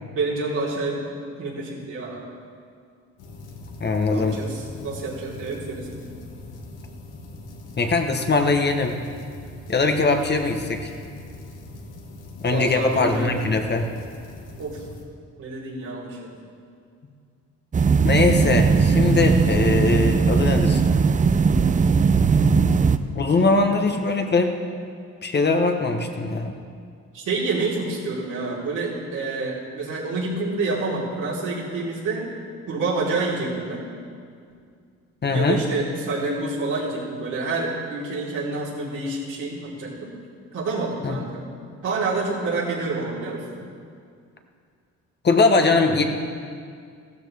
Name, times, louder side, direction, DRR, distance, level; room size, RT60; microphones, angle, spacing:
voice 1, 0.1-1.0 1.4-2.3 4.1-6.2 12.5-13.4 14.6-14.8 15.4-16.3 23.6-23.8 27.1-32.2 32.7-33.9 35.3-40.1 40.5-41.5 41.8-43.6, right 3 dB, 80° right, -7 dB, 4.0 m, -28 dB
sound 1, 3.2-15.0, left 2 dB, 80° left, 1.7 m, -41 dB
voice 2, 3.8-4.4 7.8-9.0 9.7-10.9 12.4-13.9 18.0-20.8 23.1-24.6 25.2-26.6 35.2-35.6 41.0-41.2 45.2-46.0, left 3 dB, 35° left, 4 dB, 1.2 m, -21 dB
sound 2, 17.7-23.0, right 5 dB, 25° right, 0.5 m, -18 dB
15.5 x 13.0 x 3.5 m, 2.2 s
cardioid pair, 90°, 30 cm